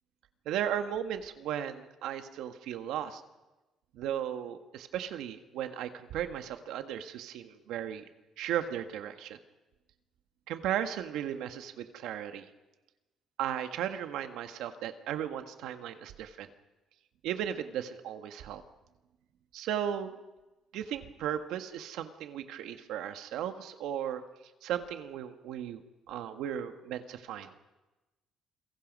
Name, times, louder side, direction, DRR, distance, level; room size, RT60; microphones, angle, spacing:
voice 1, 0.4-3.2 3.9-8.0 8.4-9.4 10.5-12.5 13.4-16.5 17.2-18.6 19.5-20.1 20.7-24.2 24.6-25.8 26.1-27.5, right 10 dB, 85° right, 7 dB, 1.6 m, -36 dB
29.5 x 23.0 x 5.4 m, 1.1 s
cardioid pair, 100°, 0 cm